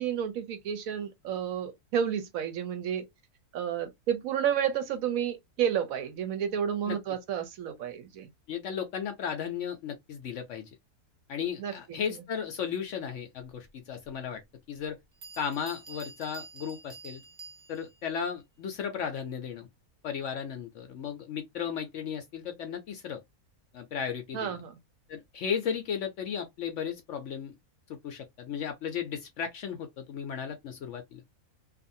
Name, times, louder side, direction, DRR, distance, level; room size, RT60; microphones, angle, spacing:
voice 1, 0.0-3.0 3.5-8.3 11.6-12.0 24.3-24.8, right 8 dB, 70° right, 1.0 m, -31 dB
voice 2, 8.5-10.7 11.3-14.4 14.7-15.0 15.4-17.2 17.7-19.7 20.0-23.2 23.7-24.6 25.1-27.5 27.9-31.2, left 7 dB, 65° left, 0.8 m, -35 dB
Bell, 14.8-14.9 15.2-18.0, right 4 dB, 40° right, 0.9 m, -47 dB
2.6 x 2.4 x 2.6 m
omnidirectional pair, 1.6 m